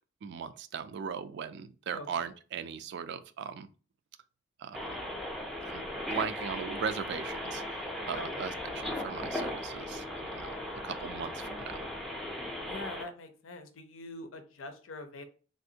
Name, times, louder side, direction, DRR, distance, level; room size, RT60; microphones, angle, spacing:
voice 1, 0.2-3.7 4.6-5.0 5.6-5.8 6.1-10.6 10.8-11.7, right 7 dB, 60° right, 12 dB, 0.3 m, -38 dB
voice 2, 1.9-2.2 8.1-8.5 12.6-15.2, left 2 dB, 80° left, 8 dB, 0.6 m, -44 dB
sound 1, 4.7-13.0, left 1 dB, ahead, 0.5 m, -37 dB
3.4 x 2.5 x 2.7 m, 0.38 s
head